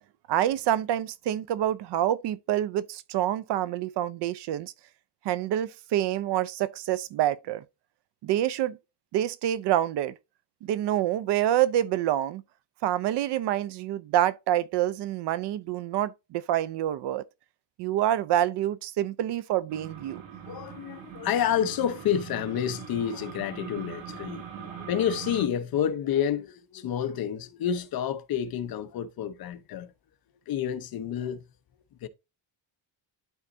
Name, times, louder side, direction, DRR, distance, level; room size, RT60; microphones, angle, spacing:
voice 1, 0.3-4.7 5.2-7.6 8.2-8.8 9.1-10.1 10.6-12.4 12.8-17.2 17.8-20.2, right 12 dB, 65° right, 0.6 m, -27 dB
sound 1, 19.7-25.5, right 8 dB, 90° right, 2.2 m, -42 dB
voice 2, 20.4-29.9 30.5-31.4 32.0-32.1, left 9 dB, 55° left, 0.8 m, -29 dB
12.0 x 4.0 x 2.6 m
cardioid pair, 170°, 44 cm